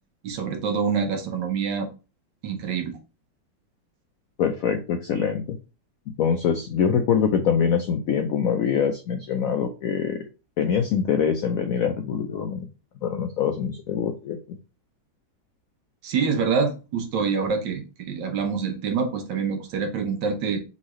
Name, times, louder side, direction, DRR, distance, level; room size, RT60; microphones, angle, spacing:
voice 1, 0.2-1.9 2.4-3.0 16.0-20.6, right 5 dB, 75° right, 5 dB, 1.5 m, -26 dB
voice 2, 4.4-5.6 6.2-10.2 10.6-12.7 13.0-14.6, left 7 dB, 85° left, 6 dB, 0.7 m, -24 dB
4.0 x 3.7 x 3.0 m, 0.31 s
omnidirectional pair, 2.1 m